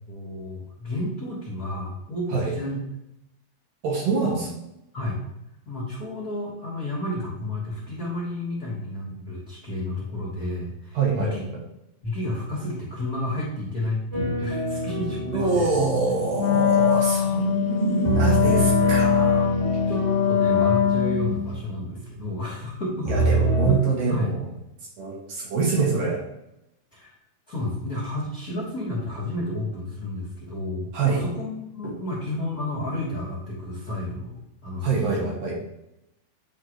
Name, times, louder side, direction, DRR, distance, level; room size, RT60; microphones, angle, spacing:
voice 1, 0.1-2.8 4.9-5.2 5.6-11.4 12.0-15.7 18.5-18.7 19.9-23.4 23.6-23.8 24.1-24.3 26.9-27.1 27.5-34.3 34.6-35.3, left 1 dB, 65° left, -7 dB, 0.9 m, -31 dB
voice 2, 3.8-4.5 10.9-11.4 15.3-19.5 23.1-24.3 25.0-26.2 30.9-31.2 34.8-35.6, right 4 dB, 80° right, -2 dB, 1.4 m, -25 dB
sound 1, 14.1-17.5 18.0-22.7 23.0-23.8, right 2 dB, 40° right, 0.5 m, -26 dB
Wind instrument woodwind instrument, 16.3-21.5, left 8 dB, 85° left, 1.9 m, -22 dB
10.0 x 3.9 x 3.1 m, 0.86 s
omnidirectional pair, 4.6 m